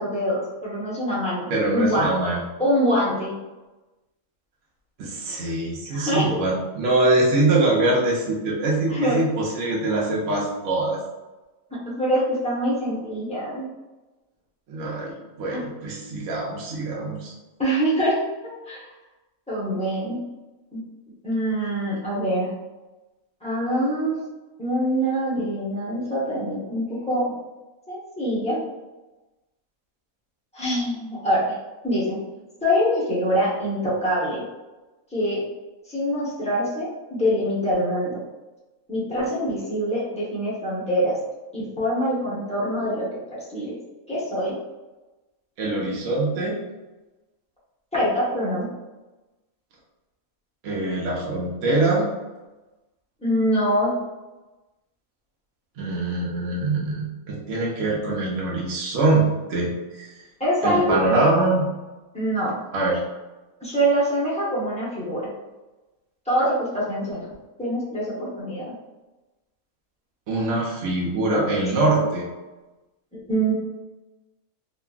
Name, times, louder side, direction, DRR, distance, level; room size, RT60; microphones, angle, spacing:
voice 1, 0.0-2.1 2.6-3.3 5.9-6.4 8.9-9.2 11.7-13.6 15.5-15.6 17.6-18.9 19.5-20.2 20.7-20.8 21.2-22.5 23.4-24.2 24.6-27.3 27.9-28.6 30.5-31.6 31.8-32.2 32.6-34.4 35.1-35.4 35.9-38.2 38.9-41.1 41.5-43.8 44.1-44.5 47.9-48.7 53.2-53.9 60.4-61.3 62.1-62.5 63.6-65.3 66.3-68.7 73.1-73.5, equal, 5° left, -8 dB, 0.6 m, -24 dB
voice 2, 1.5-2.5 5.0-11.0 14.7-17.3 45.6-46.6 50.6-52.1 55.8-60.1 60.6-61.7 62.7-63.0 70.3-72.2, right 2 dB, 65° right, -4 dB, 1.0 m, -23 dB
2.9 x 2.5 x 2.3 m, 1.1 s
omnidirectional pair, 1.5 m